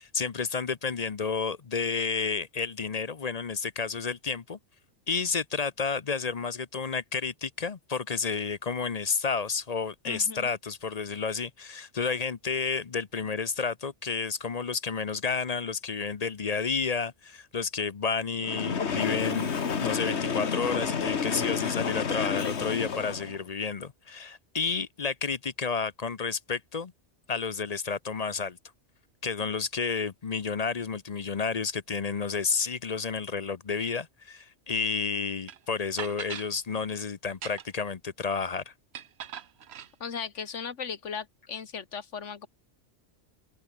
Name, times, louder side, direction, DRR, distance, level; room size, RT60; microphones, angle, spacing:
voice 1, 0.0-4.6 5.1-26.9 27.3-28.6 29.2-38.7, left 5 dB, 40° left, 0.8 m, -31 dB
voice 2, 10.1-10.5 40.0-42.5, left 6 dB, 85° left, 1.9 m, -37 dB
Train, 18.4-23.4, left 6 dB, 65° left, 1.7 m, -30 dB
sound 1, 35.5-35.6 36.0-36.5 37.3-37.9 38.9-39.9, right 8 dB, 65° right, 1.1 m, -40 dB
open air
omnidirectional pair, 1.2 m